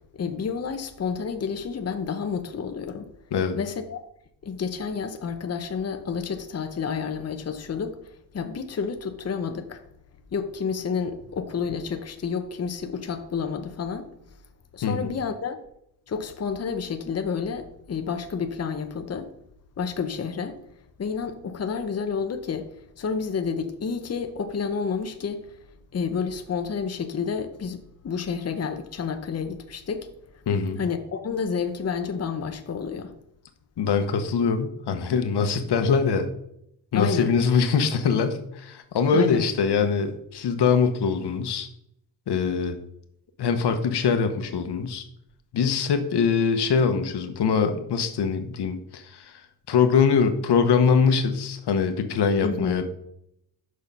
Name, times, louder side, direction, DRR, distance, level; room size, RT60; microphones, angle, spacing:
voice 1, 0.1-3.1 3.6-4.0 4.4-8.0 8.3-9.8 10.3-14.1 14.7-15.6 16.1-19.3 19.8-20.6 21.0-22.7 23.0-25.5 25.9-30.1 30.8-33.1 36.9-37.3 39.1-39.5 52.4-52.8, left 6 dB, 40° left, 0.8 m, -30 dB
voice 2, 14.8-15.1 30.5-30.8 33.8-36.3 36.9-41.7 42.3-42.8 43.4-45.0 45.5-49.3 49.7-52.8, left 6 dB, 85° left, 1.0 m, -23 dB
6.5 x 6.1 x 5.3 m
wide cardioid pair, 120°, 39 cm